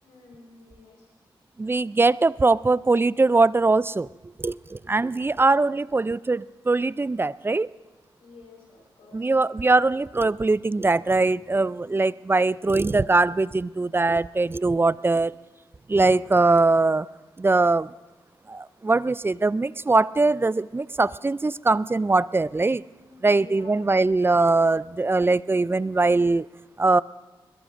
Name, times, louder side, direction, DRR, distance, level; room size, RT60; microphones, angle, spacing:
voice 1, 0.0-1.1 4.8-5.3 8.2-9.3 11.5-12.0 14.7-15.2 16.1-16.4 23.0-23.8, left 3 dB, 90° left, -2 dB, 4.7 m, -51 dB
voice 2, 1.6-4.1 4.4-7.7 9.1-15.3 15.9-17.1 17.4-17.9 18.5-22.8 23.2-26.5 26.8-27.0, right 3 dB, 25° right, 19 dB, 0.4 m, -21 dB
21.5 x 21.0 x 2.6 m, 1.2 s
supercardioid pair, 40°, 10 cm